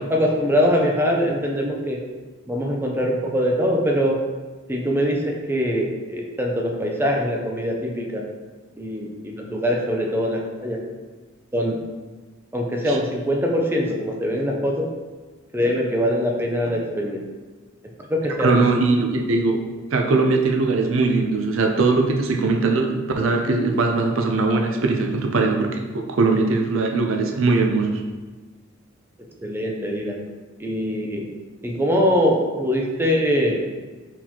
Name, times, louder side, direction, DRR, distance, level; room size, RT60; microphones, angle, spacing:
voice 1, 0.1-2.0 2.5-4.2 4.7-8.2 8.8-10.8 11.5-11.8 12.5-14.9 15.5-17.2 18.1-18.5 29.4-30.2 30.6-31.2 31.6-33.7, equal, 10° right, -1 dB, 0.5 m, -23 dB
voice 2, 18.4-19.6 19.9-28.0, right 3 dB, 70° right, 3 dB, 0.5 m, -20 dB
4.3 x 4.1 x 2.9 m, 1.3 s
head